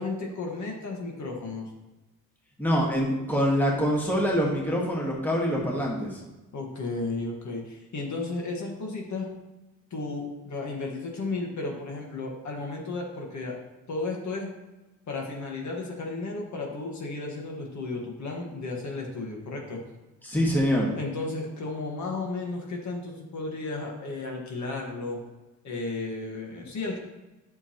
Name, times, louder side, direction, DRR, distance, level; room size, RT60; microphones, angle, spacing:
voice 1, 0.0-1.7 6.5-9.3 9.9-13.6 13.9-14.5 15.1-19.8 20.9-25.2 25.6-27.0, left 3 dB, 60° left, 0 dB, 1.7 m, -33 dB
voice 2, 2.6-6.2 20.2-20.9, equal, 5° left, -3 dB, 1.6 m, -25 dB
10.0 x 6.6 x 3.0 m, 1.1 s
wide cardioid pair, 150°, 32 cm